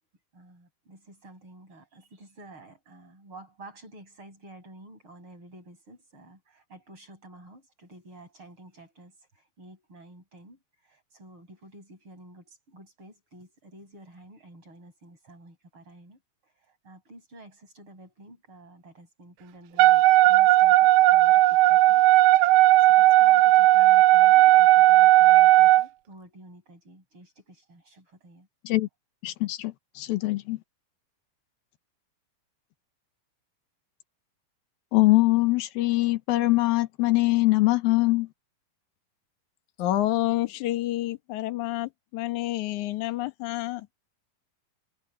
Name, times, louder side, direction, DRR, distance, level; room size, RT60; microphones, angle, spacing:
voice 1, 0.3-9.1 9.6-10.6 10.9-16.2 16.8-21.4 21.7-22.0 22.8-28.5, right 1 dB, 30° right, 8.8 m, -50 dB
Wind instrument woodwind instrument, 19.8-25.9, right 17 dB, 90° right, 2.7 m, -16 dB
voice 2, 29.2-30.6 34.9-38.3, left 19 dB, 75° left, 2.8 m, -23 dB
voice 3, 39.8-43.9, left 15 dB, 60° left, 2.6 m, -29 dB
omnidirectional pair, 4.6 m